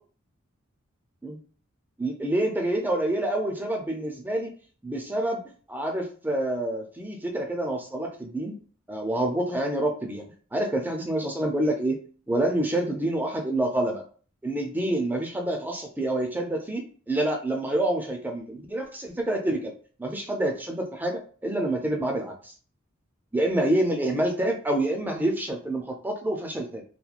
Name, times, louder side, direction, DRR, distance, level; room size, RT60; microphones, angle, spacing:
voice 1, 2.0-4.5 4.8-5.4 5.7-8.5 8.9-10.2 10.5-12.0 12.3-14.0 14.4-19.7 20.0-22.5 23.3-26.8, right 1 dB, 10° right, 2 dB, 0.3 m, -27 dB
2.8 x 2.2 x 2.4 m, 0.41 s
head